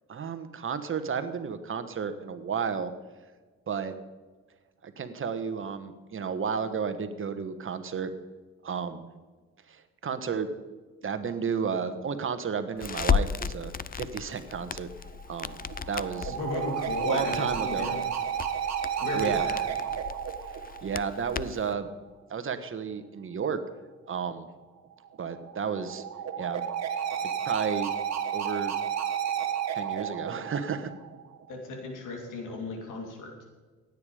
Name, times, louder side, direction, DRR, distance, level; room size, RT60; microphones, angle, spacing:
voice 1, 0.1-2.9 3.7-3.9 4.8-8.1 8.6-9.1 9.7-10.5 11.0-14.9 15.3-15.6 15.9-16.4 17.0-17.9 19.1-19.5 20.4-21.9 22.3-23.6 24.1-24.5 25.2-26.0 26.4-26.6 27.2-27.9 28.3-28.8 29.7-30.9, right 6 dB, 45° right, 10 dB, 1.3 m, -32 dB
Crackle, 12.8-21.7, left 7 dB, 30° left, 0.5 m, -35 dB
sound 1, 15.1-21.5 25.1-31.5, right 8 dB, 60° right, 1.7 m, -32 dB
voice 2, 16.3-18.1 19.0-19.6 31.5-33.3, left 2 dB, 90° left, 2 dB, 3.2 m, -35 dB
15.5 x 9.4 x 5.0 m, 1.4 s
cardioid pair, 90°, 30 cm